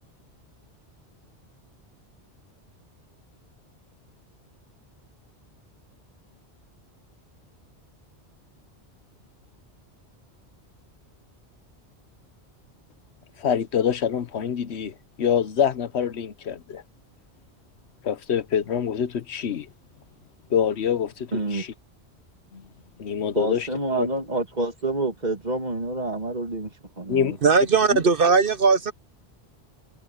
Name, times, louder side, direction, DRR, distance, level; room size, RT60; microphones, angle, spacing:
voice 1, 13.4-16.8 18.0-19.7 20.5-21.7 22.5-22.6 23.0-23.7 24.0-24.1 27.1-27.4 27.9-28.0, left 8 dB, 75° left, 1.2 m, -25 dB
voice 2, 21.3-21.6 23.3-26.7 27.0-27.4, right 2 dB, 40° right, 2.6 m, -28 dB
voice 3, 27.4-28.9, right 5 dB, 55° right, 1.1 m, -18 dB
omnidirectional pair, 1.1 m